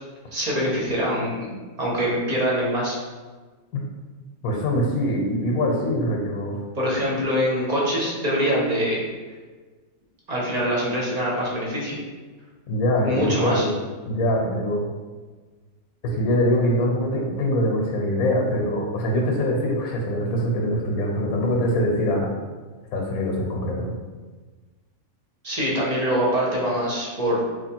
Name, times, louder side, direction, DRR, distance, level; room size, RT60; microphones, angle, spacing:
voice 1, 0.3-3.0 6.8-9.0 10.3-11.9 13.0-13.7 25.4-27.4, equal, 35° right, -4 dB, 0.8 m, -24 dB
voice 2, 4.4-6.6 12.7-13.7 14.0-14.9 16.2-22.3 22.9-24.0, equal, 85° left, 0 dB, 1.2 m, -23 dB
3.2 x 2.4 x 4.4 m, 1.4 s
omnidirectional pair, 1.5 m